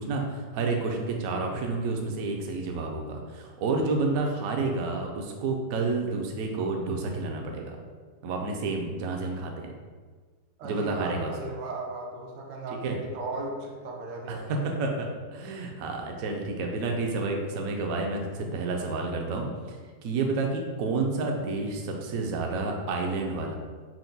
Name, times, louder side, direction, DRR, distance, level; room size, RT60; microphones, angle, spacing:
voice 1, 0.0-7.8 8.2-9.7 10.6-11.3 12.8-13.0 14.3-19.8 20.0-23.5, right 3 dB, 70° right, 2 dB, 0.8 m, -30 dB
voice 2, 10.6-14.6, right 2 dB, 90° right, -1 dB, 1.4 m, -36 dB
4.5 x 2.1 x 3.9 m, 1.5 s
omnidirectional pair, 1.9 m